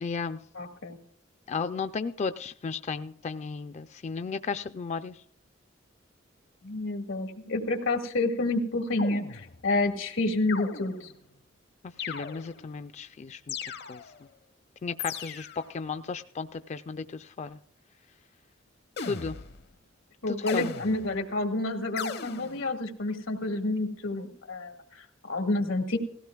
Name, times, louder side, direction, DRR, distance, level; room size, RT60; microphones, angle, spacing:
voice 1, 0.0-0.4 1.5-5.2 12.0-13.6 13.9-14.0 14.8-17.6 19.0-19.4 20.3-20.7, left 5 dB, 35° left, 11 dB, 0.4 m, -34 dB
voice 2, 0.5-1.0 6.6-11.1 20.2-26.0, left 2 dB, 90° left, 5 dB, 1.8 m, -29 dB
sound 1, 9.0-9.8 10.5-11.2 12.0-12.7 13.5-14.3 15.0-15.7 19.0-19.7 20.5-21.3 22.0-22.7, left 6 dB, 60° left, 0.8 m, -38 dB
18.0 x 16.0 x 2.3 m, 0.65 s
head